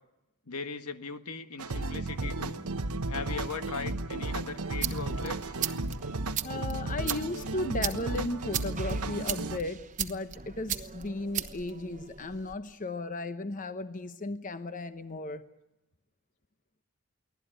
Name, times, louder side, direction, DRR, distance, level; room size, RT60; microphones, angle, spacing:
voice 1, 0.5-2.6 3.1-5.7, left 4 dB, 80° left, 9 dB, 1.5 m, -39 dB
sound 1, 1.6-9.6, right 2 dB, 85° right, 1.0 m, -34 dB
sound 2, 4.5-12.6, right 9 dB, 35° right, 1.1 m, -38 dB
voice 2, 6.4-15.4, left 2 dB, 35° left, 10 dB, 0.9 m, -35 dB
24.0 x 17.0 x 9.0 m, 0.93 s
head